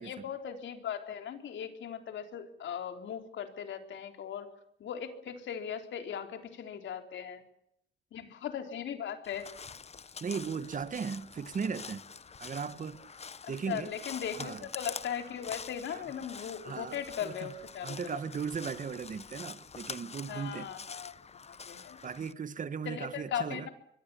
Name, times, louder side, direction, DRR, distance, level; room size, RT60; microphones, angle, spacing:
voice 1, 0.0-4.5 4.8-7.4 8.1-9.5 13.4-18.2 20.3-21.1 21.5-22.0 22.8-23.7, left 8 dB, 70° left, 4.0 m, -38 dB
Crow, 9.2-22.3, left 5 dB, 30° left, 1.1 m, -46 dB
voice 2, 10.2-12.0 12.4-13.0 13.5-13.9 14.4-14.6 15.9-16.0 16.6-17.3 17.8-20.7 22.0-23.7, right 6 dB, 40° right, 1.7 m, -37 dB
25.5 x 23.0 x 7.1 m
cardioid pair, 90°, 20 cm